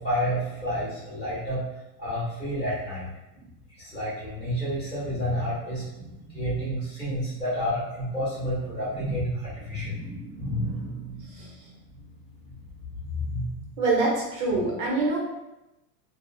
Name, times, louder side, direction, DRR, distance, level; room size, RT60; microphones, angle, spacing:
voice 1, 0.0-1.6 2.0-3.1 3.3-3.5 3.8-11.8 12.8-13.5, equal, 10° right, -11 dB, 1.0 m, -30 dB
voice 2, 13.8-15.2, right 3 dB, 85° right, -4 dB, 1.2 m, -25 dB
2.6 x 2.3 x 2.4 m, 0.95 s
supercardioid pair, 125°, 49 cm